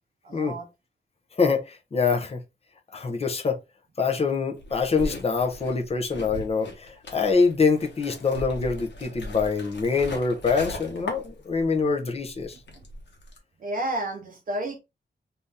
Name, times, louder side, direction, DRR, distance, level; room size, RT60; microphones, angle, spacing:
voice 1, 0.2-0.7 13.6-14.8, right 1 dB, 50° right, 0.7 m, -31 dB
voice 2, 1.4-2.4 2.9-3.6 4.0-12.6, left 4 dB, 35° left, 0.6 m, -25 dB
sound 1, 4.6-11.9 12.1-13.4, left 1 dB, 85° left, 1.1 m, -39 dB
2.7 x 2.6 x 3.4 m
wide cardioid pair, 155°, 18 cm